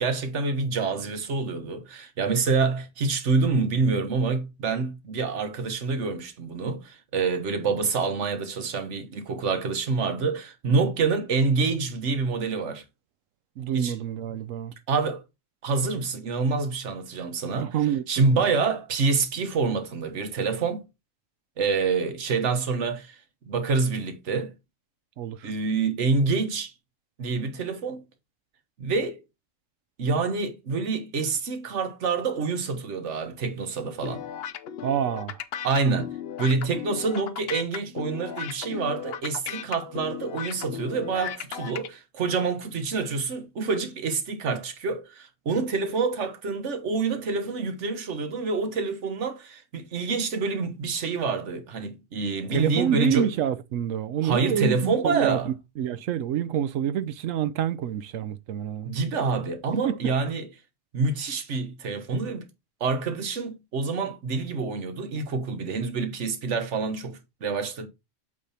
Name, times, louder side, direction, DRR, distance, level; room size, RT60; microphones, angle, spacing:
voice 1, 0.0-12.8 13.7-14.0 14.9-15.2 15.6-17.7 18.1-20.8 21.6-23.2 23.5-24.5 25.4-26.7 27.2-28.0 28.8-29.2 30.0-34.2 35.6-36.1 36.4-53.3 54.2-55.5 58.8-60.5 60.9-62.5 62.8-67.9, right 4 dB, 70° right, 1.4 m, -27 dB
voice 2, 13.6-14.7 17.6-18.1 18.3-18.5 25.2-25.4 34.8-35.3 52.5-58.9 59.8-60.1, right 9 dB, 85° right, 1.0 m, -27 dB
sound 1, 34.0-41.9, left 9 dB, 60° left, 0.8 m, -36 dB
8.5 x 3.4 x 4.1 m
omnidirectional pair, 1.3 m